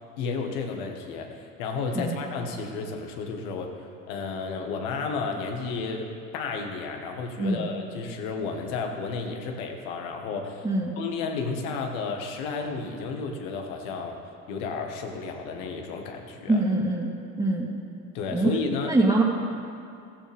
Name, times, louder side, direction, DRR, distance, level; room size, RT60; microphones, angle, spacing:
voice 1, 0.2-3.7 4.1-6.1 6.3-10.6 11.0-14.2 14.5-16.6 18.1-19.0, left 4 dB, 80° left, 3 dB, 1.8 m, -32 dB
voice 2, 7.4-7.7 10.6-10.9 16.5-17.1 17.4-17.7 18.3-19.2, right 2 dB, 15° right, -5 dB, 2.1 m, -24 dB
15.0 x 15.0 x 3.6 m, 2.5 s
supercardioid pair, 80°, 39 cm